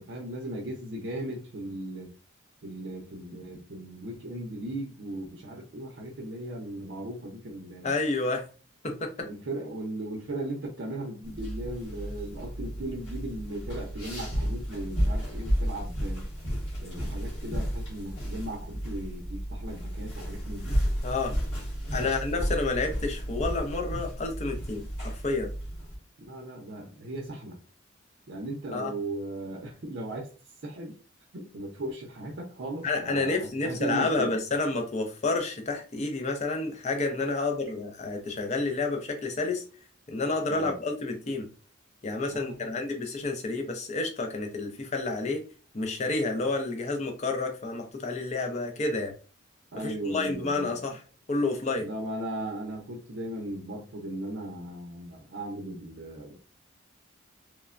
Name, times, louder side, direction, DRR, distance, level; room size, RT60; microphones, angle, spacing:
voice 1, 0.0-2.1 2.6-7.9 9.2-16.2 16.8-20.8 21.9-22.2 26.2-27.6 28.3-30.3 30.6-31.0 31.3-34.4 40.5-40.8 42.3-42.7 49.7-50.8 51.8-56.5, right 1 dB, 60° right, 0 dB, 0.5 m, -37 dB
voice 2, 7.8-8.4 8.8-9.3 21.0-21.4 21.9-25.5 28.7-28.9 32.8-39.6 40.1-41.5 42.0-45.4 45.7-49.1 49.8-51.0 51.3-51.9, left 3 dB, 35° left, 3 dB, 0.5 m, -30 dB
Foodsteps-Sneakers-on-Carpet mono, 11.2-26.0, equal, 85° left, 1.5 m, -32 dB
3.1 x 2.1 x 2.4 m, 0.38 s
head